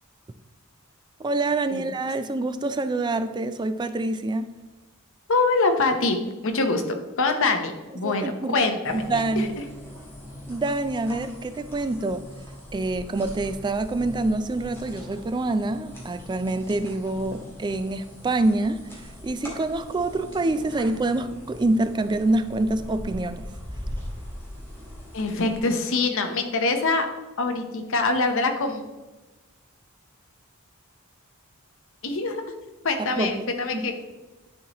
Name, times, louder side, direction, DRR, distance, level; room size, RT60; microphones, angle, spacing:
voice 1, 1.2-4.5 8.0-8.6 8.9-9.5 10.5-12.2 12.7-18.9 19.2-23.5 33.2-33.4 33.8-33.9, right 2 dB, 20° right, 0.3 m, -26 dB
voice 2, 5.3-6.2 6.4-6.8 7.2-9.6 25.1-27.1 27.4-28.8 32.0-32.4 32.8-33.9, left 3 dB, 65° left, 0.8 m, -24 dB
sound 1, 8.8-25.6, equal, 10° left, 1.8 m, -40 dB
10.0 x 4.1 x 2.9 m
head